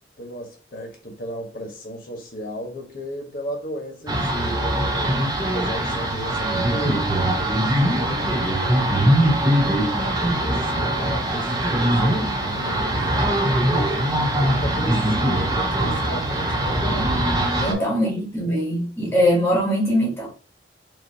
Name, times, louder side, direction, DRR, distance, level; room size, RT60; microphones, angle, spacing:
voice 1, 0.2-7.1 7.4-8.8 9.8-14.1 14.4-17.2 17.5-17.9 18.4-18.6, equal, 55° left, 1.6 m, -35 dB
sound 1, 4.1-17.7, right 1 dB, 20° right, 0.9 m, -22 dB
voice 2, 17.6-20.3, equal, 10° left, 1.3 m, -22 dB
4.8 x 2.9 x 2.9 m
head